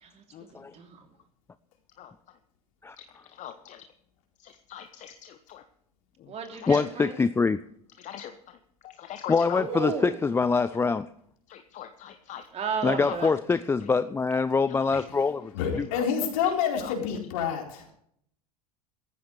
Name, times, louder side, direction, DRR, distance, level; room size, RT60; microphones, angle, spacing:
voice 1, 0.5-1.0 6.3-7.2 9.6-10.2 12.5-13.3, right 6 dB, 35° right, 3 dB, 3.1 m, -33 dB
voice 2, 3.4-3.8 4.4-5.6 6.6-6.8 8.0-8.3 8.8-9.6 11.5-12.5 13.1-13.3 14.9-15.0 15.9-16.0 16.8-16.9, left 10 dB, 40° left, 9 dB, 1.1 m, -41 dB
voice 3, 6.7-7.6 9.3-11.1 12.8-15.5 15.8-15.9, left 4 dB, 15° left, 14 dB, 0.4 m, -24 dB
voice 4, 15.5-17.9, left 7 dB, 65° left, 1 dB, 4.3 m, -28 dB
17.0 x 14.5 x 3.3 m, 0.68 s
figure-of-eight pair, 80°, 19 cm